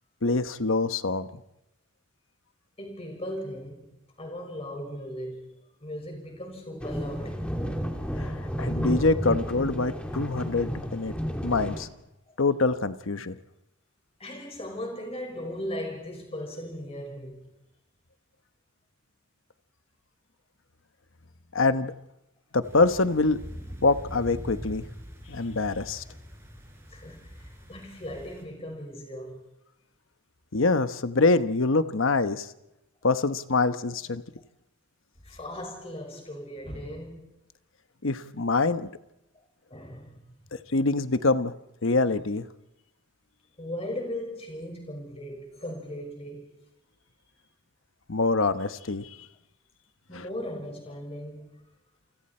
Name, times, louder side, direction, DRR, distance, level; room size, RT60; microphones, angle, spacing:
voice 1, 0.2-1.3 8.2-8.3 8.6-11.1 11.4-11.9 12.4-13.4 21.5-21.9 22.5-23.4 23.8-24.8 25.3-26.0 30.5-32.5 33.0-34.2 38.0-38.9 40.7-41.5 41.8-42.5 48.1-49.1 50.1-50.2, left 3 dB, 70° left, 1.1 m, -25 dB
voice 2, 2.8-5.5 5.8-7.6 12.3-12.4 14.2-17.5 26.9-29.5 35.2-37.2 39.7-40.4 43.6-46.5 50.1-51.6, equal, 30° left, 5.7 m, -38 dB
sound 1, 6.8-11.9, equal, 5° left, 2.5 m, -31 dB
sound 2, 22.6-28.4, equal, 15° right, 4.5 m, -43 dB
29.0 x 24.5 x 4.4 m
head